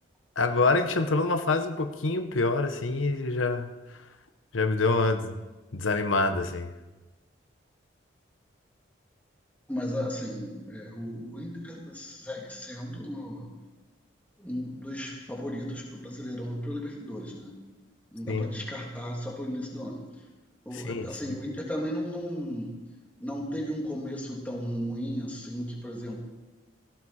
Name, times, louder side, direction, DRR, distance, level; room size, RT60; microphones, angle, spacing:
voice 1, 0.4-3.7 4.5-5.4 5.7-6.7 18.3-18.5 20.7-21.1, left 3 dB, 90° left, 7 dB, 1.1 m, -26 dB
voice 2, 9.7-13.5 14.4-17.6 18.1-20.0 20.6-22.7 23.2-26.1, equal, 10° left, -2 dB, 2.9 m, -35 dB
18.0 x 16.0 x 4.3 m, 1.2 s
head